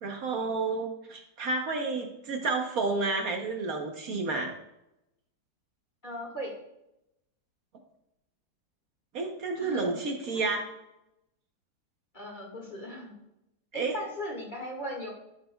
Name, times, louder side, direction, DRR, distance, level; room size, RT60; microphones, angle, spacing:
voice 1, 0.0-4.5 9.1-10.6 13.7-14.0, right 3 dB, 60° right, 2 dB, 1.3 m, -30 dB
voice 2, 6.0-6.6 9.6-10.5 12.1-13.1 13.7-15.1, equal, 30° left, -1 dB, 1.8 m, -38 dB
11.5 x 6.6 x 2.2 m, 0.87 s
omnidirectional pair, 1.8 m